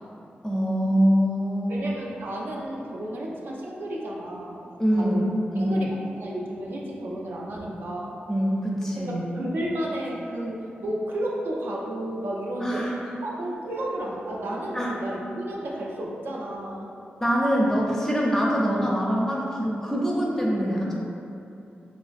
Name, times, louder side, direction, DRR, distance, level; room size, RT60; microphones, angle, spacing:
voice 1, 0.4-1.8 4.8-5.2 5.5-5.8 7.6-7.7 8.3-9.2 12.6-12.9 14.7-14.9 17.2-21.1, equal, 15° left, -4 dB, 0.5 m, -24 dB
voice 2, 1.7-4.6 5.0-5.2 5.6-8.2 9.1-12.9 13.2-16.9, right 1 dB, 65° right, -2 dB, 0.4 m, -32 dB
3.1 x 2.3 x 2.5 m, 2.7 s
cardioid pair, 80°, 4 cm